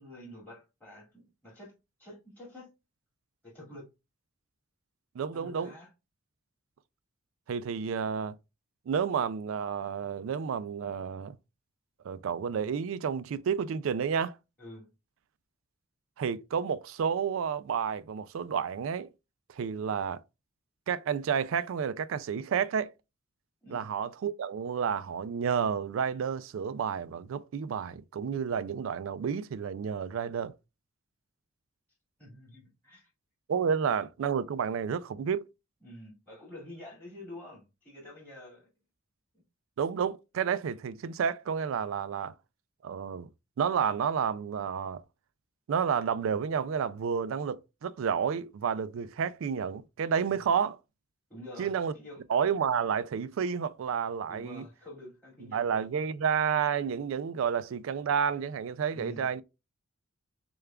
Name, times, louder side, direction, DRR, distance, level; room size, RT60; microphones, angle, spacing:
voice 1, 0.0-1.7 2.0-2.7 3.4-3.9 5.3-5.9 14.6-14.9 23.6-23.9 32.2-33.1 35.8-38.7 50.3-50.5 51.3-52.2 54.3-55.9 58.9-59.2, left 1 dB, 10° left, 2.3 m, -48 dB
voice 2, 5.2-5.7 7.5-8.4 8.9-11.4 12.0-14.3 16.2-19.1 19.6-20.2 20.9-22.9 23.7-30.5 33.5-35.4 39.8-42.3 42.8-43.3 43.6-45.0 45.7-50.8 51.6-51.9 52.3-54.6 55.5-59.4, right 7 dB, 65° right, 0.3 m, -30 dB
6.5 x 2.3 x 2.2 m
head